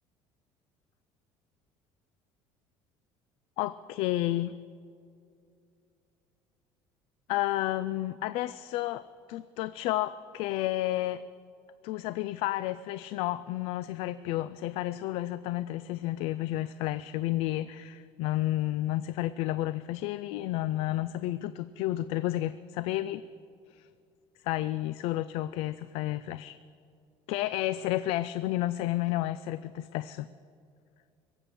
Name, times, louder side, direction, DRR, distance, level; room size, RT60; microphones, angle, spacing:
voice 1, 3.6-4.5 7.3-9.0 9.3-11.2 11.8-23.2 24.4-26.6 27.3-30.3, left 15 dB, 65° left, 15 dB, 0.4 m, -31 dB
23.0 x 8.0 x 6.8 m, 2.4 s
cardioid pair, 160°, 10 cm